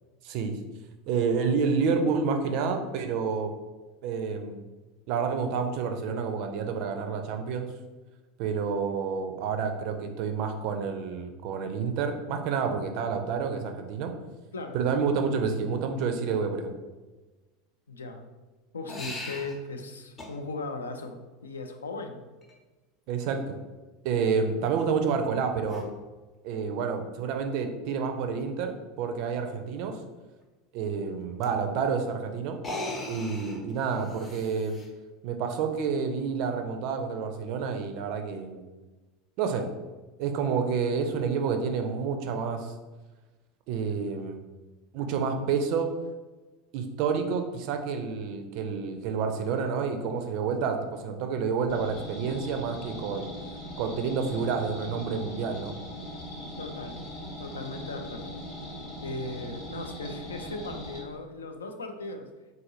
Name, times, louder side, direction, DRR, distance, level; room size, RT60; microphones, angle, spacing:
voice 1, 0.2-0.6 1.1-3.5 4.0-4.6 5.1-7.7 8.4-14.1 14.7-16.7 23.1-23.6 24.0-25.9 26.4-30.0 30.7-32.6 33.1-34.8 35.2-38.6 39.4-39.7 40.2-42.7 43.7-44.4 44.9-45.9 46.7-53.3 53.8-55.7, right 5 dB, 50° right, 5 dB, 0.4 m, -29 dB
voice 2, 17.9-18.3 18.7-22.2 56.6-57.0 57.4-58.4 59.0-62.3, left 3 dB, 75° left, 5 dB, 0.3 m, -38 dB
sound 1, 18.9-19.5 20.2-20.3 22.4-22.5 25.7-25.9 27.3-27.4 27.9-28.0 28.3-28.4 31.4-31.5 32.5-34.9, left 2 dB, 25° left, 0.7 m, -38 dB
sound 2, 51.7-61.0, equal, 55° left, 1.0 m, -40 dB
3.8 x 2.5 x 2.8 m, 1.2 s
figure-of-eight pair, 75°, 0 cm